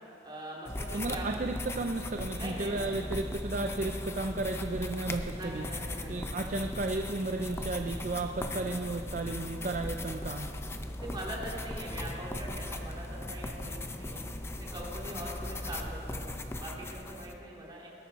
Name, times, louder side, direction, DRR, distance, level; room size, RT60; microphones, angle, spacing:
voice 1, 0.2-1.4 2.3-3.1 5.3-6.2 11.0-14.2 14.7-17.9, right 1 dB, 25° right, -4 dB, 2.9 m, -42 dB
sound 1, 0.7-17.3, left 1 dB, 15° left, 0.6 m, -38 dB
voice 2, 0.9-5.7 6.1-10.5, right 2 dB, 45° right, 4 dB, 0.5 m, -33 dB
21.0 x 12.0 x 4.1 m, 2.9 s
head